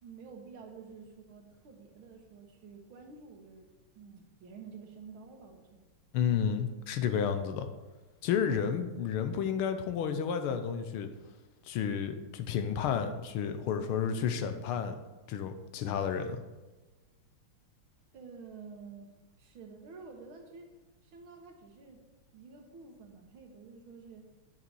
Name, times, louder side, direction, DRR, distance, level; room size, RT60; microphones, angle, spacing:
voice 1, 0.0-3.7 4.0-5.8 18.1-20.7 21.0-22.1 22.3-24.3, right 5 dB, 70° right, 3 dB, 2.0 m, -50 dB
voice 2, 6.1-7.7 8.2-11.1 11.7-15.0 15.3-16.4, left 7 dB, 85° left, 8 dB, 1.7 m, -31 dB
9.1 x 6.6 x 4.7 m, 1.2 s
omnidirectional pair, 2.4 m